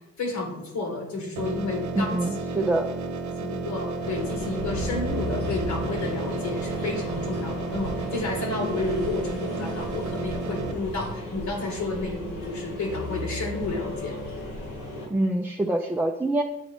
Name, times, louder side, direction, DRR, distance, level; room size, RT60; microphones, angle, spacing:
voice 1, 0.2-2.2 2.6-2.7 3.4-14.1, left 3 dB, 70° left, 1 dB, 1.9 m, -31 dB
sound 1, 1.4-10.7, right 3 dB, 70° right, 0.8 m, -32 dB
voice 2, 2.0-2.8 15.1-16.4, right 1 dB, 5° right, 0 dB, 0.4 m, -25 dB
sound 2, 4.0-15.1, left 1 dB, 85° left, 2.3 m, -35 dB
8.3 x 3.9 x 3.5 m, 0.92 s
cardioid pair, 90°, 30 cm